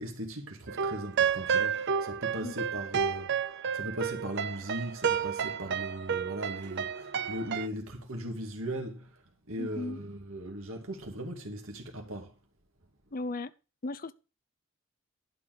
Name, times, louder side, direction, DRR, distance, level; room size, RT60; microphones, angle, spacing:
voice 1, 0.0-3.3 3.7-9.1 9.5-12.3, right 1 dB, 75° right, 2.3 m, -38 dB
sound 1, 0.7-7.7, right 7 dB, 55° right, 0.6 m, -31 dB
voice 2, 9.6-10.0 13.1-13.5 13.8-14.1, left 2 dB, 45° left, 0.7 m, -36 dB
11.5 x 4.8 x 7.8 m
head